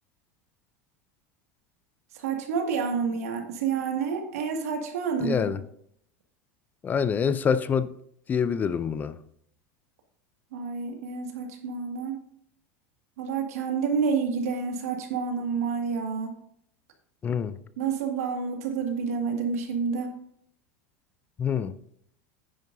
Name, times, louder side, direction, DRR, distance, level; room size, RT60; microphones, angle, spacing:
voice 1, 2.1-5.6 10.5-12.2 13.2-16.4 17.8-20.1, right 5 dB, 85° right, 2.0 m, -29 dB
voice 2, 5.2-5.6 6.8-7.9 8.3-9.1 17.2-17.5 21.4-21.7, left 7 dB, 20° left, 0.4 m, -26 dB
10.0 x 9.3 x 2.7 m
supercardioid pair, 135°, 8 cm